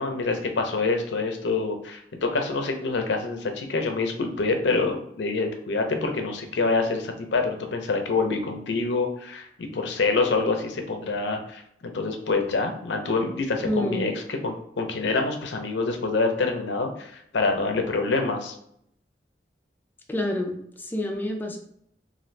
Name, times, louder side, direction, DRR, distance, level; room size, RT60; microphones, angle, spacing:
voice 1, 0.0-11.6 11.9-18.5, left 3 dB, 80° left, 5 dB, 0.5 m, -26 dB
voice 2, 13.6-14.1 20.1-21.6, left 1 dB, 10° left, 1 dB, 0.4 m, -28 dB
2.5 x 2.5 x 3.1 m, 0.71 s
head